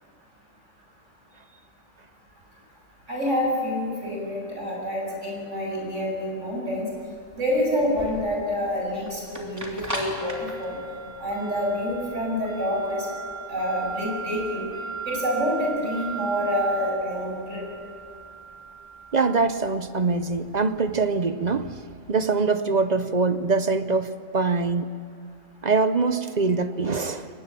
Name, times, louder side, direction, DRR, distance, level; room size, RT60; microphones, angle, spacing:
voice 1, 3.1-6.8 7.3-10.8 11.2-13.1 13.5-14.6 15.1-17.7, equal, 65° right, -2 dB, 7.3 m, -27 dB
sound 1, 6.9-21.0, right 3 dB, 10° right, 3.2 m, -37 dB
voice 2, 19.1-21.7 22.1-24.9 25.6-27.3, right 4 dB, 40° right, 11 dB, 0.7 m, -23 dB
23.0 x 20.0 x 7.5 m, 2.4 s
omnidirectional pair, 1.4 m